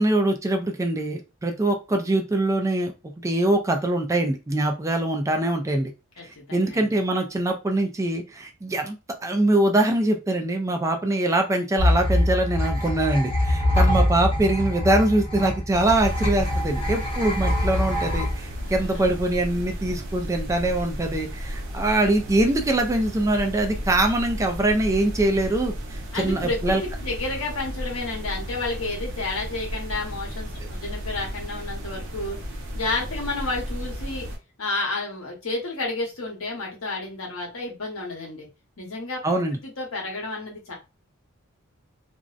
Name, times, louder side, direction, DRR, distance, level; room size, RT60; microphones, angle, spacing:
voice 1, 0.0-2.9 3.2-5.9 6.5-9.0 9.2-26.8 30.6-30.7 39.2-39.6, right 1 dB, 15° right, 4 dB, 0.3 m, -23 dB
voice 2, 6.2-7.0 18.6-19.0 26.1-32.4 32.7-34.3 34.6-38.5 38.8-39.2 39.6-40.8, left 2 dB, 85° left, -1 dB, 1.0 m, -31 dB
sound 1, 11.8-19.3, left 1 dB, 25° left, 0.8 m, -24 dB
sound 2, 15.7-34.4, equal, 60° right, 0.6 m, -34 dB
2.5 x 2.1 x 2.4 m, 0.27 s
head